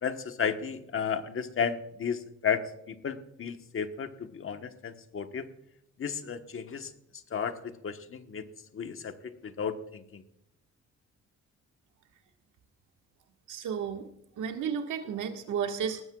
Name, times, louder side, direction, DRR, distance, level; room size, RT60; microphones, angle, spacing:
voice 1, 0.0-5.5 6.0-6.9 7.3-8.5 8.7-10.2, left 7 dB, 45° left, 7 dB, 1.3 m, -33 dB
voice 2, 13.5-14.1 14.4-16.0, right 7 dB, 80° right, 4 dB, 1.7 m, -32 dB
19.0 x 13.5 x 2.4 m, 0.78 s
cardioid pair, 90°, 30 cm